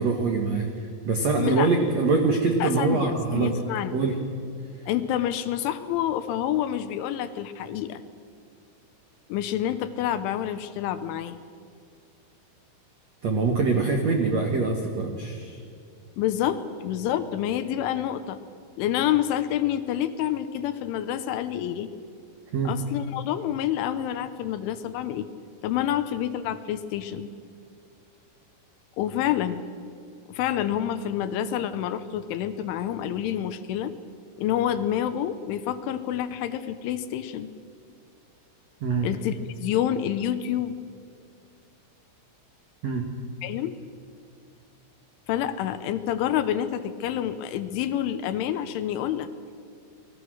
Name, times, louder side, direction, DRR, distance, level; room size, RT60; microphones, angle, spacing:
voice 1, 0.0-3.6 3.9-4.2 13.2-15.6 22.5-22.8 38.8-39.1 42.8-43.1, right 4 dB, 85° right, 2 dB, 1.5 m, -24 dB
voice 2, 1.4-1.7 2.6-4.0 4.9-8.0 9.3-11.4 16.2-18.4 18.8-21.9 22.6-25.3 25.6-27.3 29.0-29.6 30.3-33.9 34.4-37.5 39.0-40.7 43.4-43.8 45.3-49.3, left 11 dB, 75° left, 11 dB, 3.1 m, -28 dB
29.5 x 20.5 x 6.4 m, 2.3 s
omnidirectional pair, 6.0 m